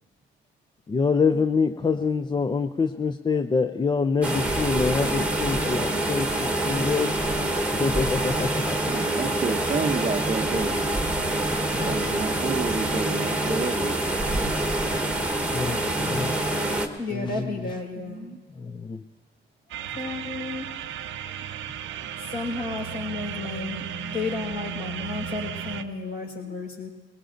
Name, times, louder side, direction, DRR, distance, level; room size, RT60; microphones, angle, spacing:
voice 1, 0.9-7.2 7.7-8.9 11.7-12.2 15.5-16.4 17.1-17.8 18.6-19.0 24.8-25.1 26.4-26.6, left 5 dB, 25° left, 8 dB, 0.4 m, -26 dB
sound 1, 4.2-16.9, right 1 dB, 5° right, 1.2 m, -26 dB
voice 2, 8.8-10.8 11.8-14.3 17.2-17.6 18.0-18.4, right 4 dB, 35° right, 7 dB, 0.7 m, -30 dB
voice 3, 17.0-18.3 19.9-20.7 22.3-26.9, left 3 dB, 55° left, -1 dB, 4.6 m, -32 dB
sound 2, 19.7-25.8, right 8 dB, 75° right, 0.6 m, -35 dB
20.5 x 19.0 x 2.6 m, 1.3 s
cardioid pair, 90°, 20 cm